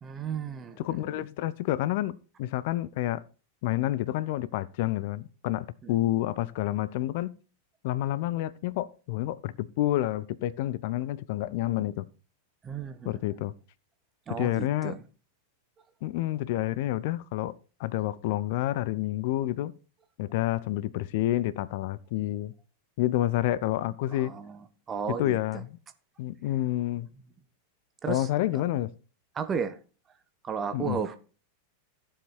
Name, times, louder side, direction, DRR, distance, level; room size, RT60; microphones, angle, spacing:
voice 1, 0.0-0.8 1.1-1.2 5.8-6.0 12.6-13.4 14.3-15.0 24.1-24.6 24.9-25.6 28.0-28.6 29.3-29.8 30.4-31.2, right 6 dB, 20° right, 1.3 m, -34 dB
voice 2, 0.8-3.2 3.6-7.3 7.8-12.1 13.1-13.5 14.3-15.0 16.0-17.5 17.8-19.7 20.2-22.5 23.0-24.3 25.1-25.8 26.2-27.1 28.1-28.9 30.7-31.0, left 14 dB, 50° left, 0.5 m, -29 dB
14.5 x 7.4 x 4.5 m
figure-of-eight pair, 90°, 0 cm